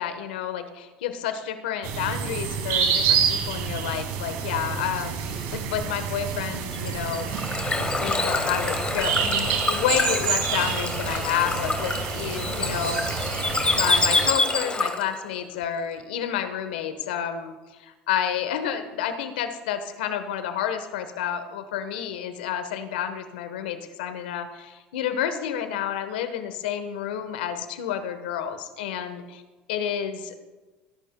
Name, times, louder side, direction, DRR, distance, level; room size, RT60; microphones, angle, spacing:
voice 1, 0.0-7.3 7.7-13.3 13.7-29.4 29.7-30.3, left 9 dB, 85° left, 9 dB, 1.2 m, -30 dB
sound 1, 1.8-14.3, right 7 dB, 70° right, 2.2 m, -28 dB
Bird / Water, 6.7-15.2, left 3 dB, 20° left, 1.6 m, -27 dB
21.0 x 11.0 x 2.3 m, 1.2 s
hypercardioid pair, 80°, 5 cm